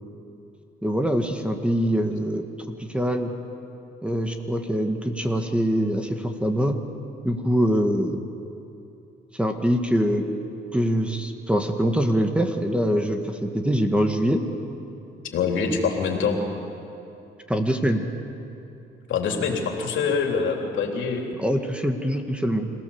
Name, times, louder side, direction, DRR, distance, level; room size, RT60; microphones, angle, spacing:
voice 1, 0.8-2.5 2.8-3.3 4.0-6.8 7.2-8.2 9.3-10.2 10.7-14.4 17.5-18.0 21.4-22.7, equal, 5° right, 5 dB, 1.7 m, -23 dB
voice 2, 15.3-16.4 19.1-21.3, left 5 dB, 75° left, 2 dB, 3.2 m, -24 dB
26.5 x 17.0 x 7.2 m, 2.8 s
cardioid pair, 90°, 20 cm